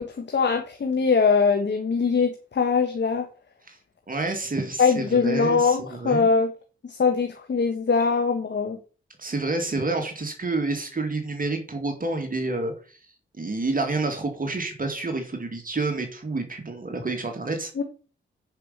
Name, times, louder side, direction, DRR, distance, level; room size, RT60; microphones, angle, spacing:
voice 1, 0.0-3.2 4.8-6.5 6.9-8.8 17.8-17.9, left 5 dB, 60° left, 5 dB, 1.5 m, -22 dB
voice 2, 4.1-6.3 9.2-13.0 13.4-17.7, right 3 dB, 40° right, 5 dB, 2.2 m, -29 dB
10.0 x 5.4 x 5.7 m, 0.37 s
supercardioid pair, 45°, 21 cm